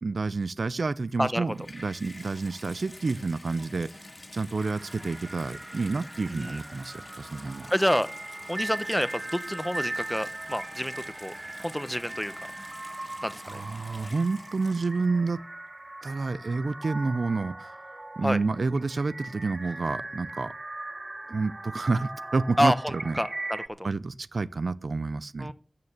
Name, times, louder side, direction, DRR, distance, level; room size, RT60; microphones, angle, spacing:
voice 1, 0.0-3.9 4.3-7.7 13.4-15.4 16.0-17.8 18.2-20.5 21.3-23.2 23.8-25.5, right 3 dB, 85° right, 0.5 m, -29 dB
Water tap faucet / Bathtub (filling or washing), 1.4-15.3 16.1-16.2, left 2 dB, 45° left, 1.9 m, -48 dB
sound 1, 4.6-23.7, right 2 dB, 35° right, 0.6 m, -40 dB
voice 2, 7.7-8.1 8.5-10.9 11.2-11.3 11.6-12.3 13.2-13.6 18.2-18.4 22.6-23.9 25.4-25.5, equal, 5° left, 0.9 m, -28 dB
13.5 x 6.7 x 7.2 m
wide cardioid pair, 50°, 0 cm